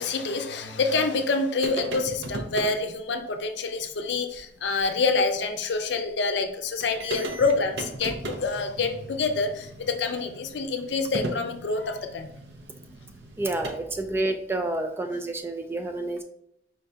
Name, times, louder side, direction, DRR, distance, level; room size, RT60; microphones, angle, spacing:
voice 1, 0.0-12.3 14.0-14.1, left 4 dB, 85° left, 6 dB, 0.5 m, -27 dB
sound 1, 1.6-2.8 4.3-4.4 4.8-4.9 6.5-6.6 6.8-13.7, right 1 dB, 70° right, 0.6 m, -37 dB
voice 2, 13.4-16.2, right 2 dB, 15° right, 6 dB, 0.3 m, -29 dB
4.5 x 3.3 x 2.7 m, 0.76 s
head